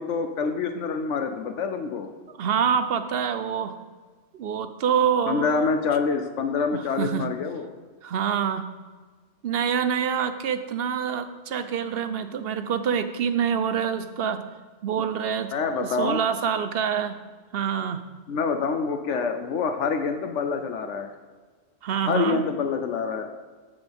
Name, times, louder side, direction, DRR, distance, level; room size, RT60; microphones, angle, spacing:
voice 1, 0.0-2.1 5.3-7.7 15.5-16.2 18.3-21.1 22.1-23.3, left 5 dB, 75° left, 6 dB, 1.0 m, -26 dB
voice 2, 2.4-3.8 4.3-5.7 6.7-7.3 8.0-8.6 9.4-14.4 14.8-17.2 17.5-18.0 21.8-22.4, right 7 dB, 60° right, 11 dB, 0.7 m, -26 dB
14.0 x 7.1 x 3.5 m, 1.4 s
omnidirectional pair, 1.3 m